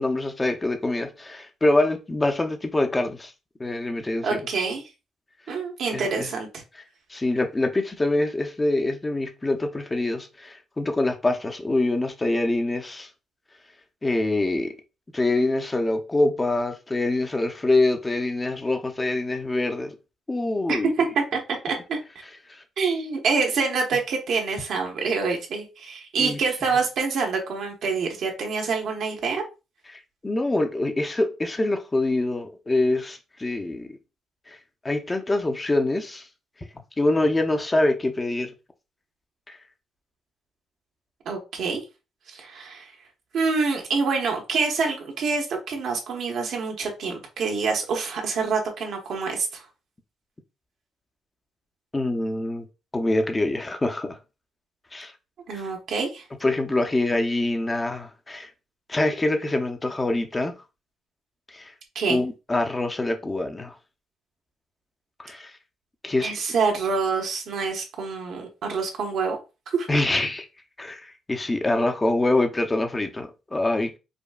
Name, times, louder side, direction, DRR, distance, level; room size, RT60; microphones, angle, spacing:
voice 1, 0.0-3.3 3.6-4.4 5.9-6.3 7.1-13.1 14.0-14.7 15.1-19.9 20.3-20.9 26.2-26.4 29.9-33.9 34.8-36.2 37.0-38.5 39.5-39.6 51.9-52.6 52.9-54.2 54.9-55.1 56.4-58.5 58.9-60.5 61.5-61.7 62.1-63.7 65.2-65.5 66.0-66.3 69.9-70.5 70.8-73.9, left 2 dB, 20° left, 0.6 m, -25 dB
voice 2, 4.2-4.8 5.5-6.5 20.7-22.0 22.8-29.4 41.2-41.8 42.3-42.9 43.3-49.7 55.5-56.2 61.9-62.2 66.2-69.4 69.7-69.9, right 4 dB, 70° right, 1.2 m, -26 dB
5.0 x 2.2 x 2.4 m
cardioid pair, 90°, 0 cm